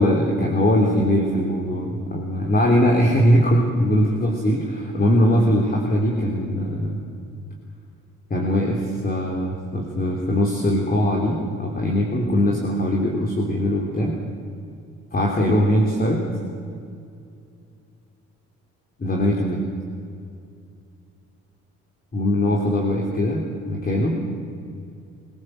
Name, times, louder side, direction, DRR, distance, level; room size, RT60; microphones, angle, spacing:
voice 1, 0.0-7.0 8.3-14.1 15.1-16.3 19.0-19.6 22.1-24.2, equal, 30° left, 0 dB, 3.3 m, -21 dB
24.0 x 17.0 x 7.8 m, 2.4 s
cardioid pair, 90°, 30 cm